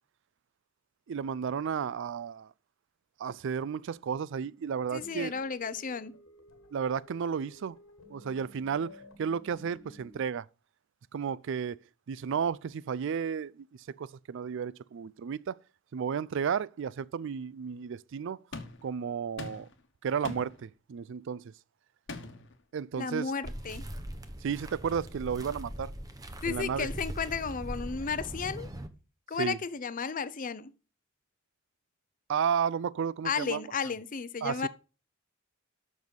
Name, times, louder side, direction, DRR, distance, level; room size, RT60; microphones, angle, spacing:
voice 1, 1.1-2.5 3.2-5.3 6.7-7.8 8.1-8.9 9.2-10.5 11.1-11.8 12.1-15.6 15.9-18.4 18.8-19.7 20.0-21.5 22.7-23.3 24.4-25.9 26.5-26.9 29.4-29.6 32.3-33.6 34.4-34.7, right 7 dB, 65° right, 0.4 m, -33 dB
sound 1, 4.9-10.2, left 1 dB, 80° left, 1.6 m, -54 dB
voice 2, 4.9-6.1 23.0-23.8 26.4-28.7 29.3-30.7 33.2-34.7, left 5 dB, 40° left, 0.6 m, -33 dB
sound 2, 18.5-18.9 19.4-19.8 20.2-20.6 22.1-22.5, left 3 dB, 60° left, 1.2 m, -41 dB
sound 3, 23.4-28.9, right 1 dB, 20° right, 0.8 m, -40 dB
7.3 x 6.1 x 5.2 m
head